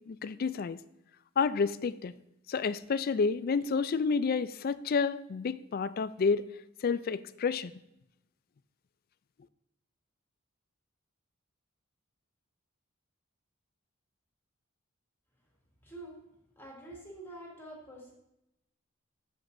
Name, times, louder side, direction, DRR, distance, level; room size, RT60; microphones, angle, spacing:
voice 1, 0.1-0.8 1.4-2.1 2.5-6.4 6.8-7.7, left 5 dB, 45° left, 15 dB, 0.4 m, -29 dB
voice 2, 15.8-16.2 16.6-18.1, right 1 dB, 10° left, -3 dB, 2.4 m, -46 dB
12.5 x 7.7 x 2.6 m, 0.85 s
head